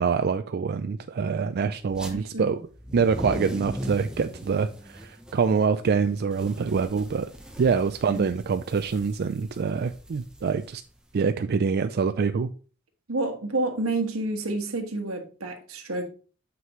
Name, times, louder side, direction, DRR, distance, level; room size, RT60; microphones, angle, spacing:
voice 1, 0.0-2.6 2.9-4.7 4.9-7.3 7.6-10.8 11.1-12.5, right 5 dB, 50° right, 0.4 m, -25 dB
sound 1, 1.9-2.1 2.7-11.2, equal, 5° right, 0.9 m, -39 dB
voice 2, 2.1-2.6 8.1-8.2 13.1-16.1, right 2 dB, 85° right, 1.4 m, -29 dB
7.4 x 6.0 x 3.1 m
head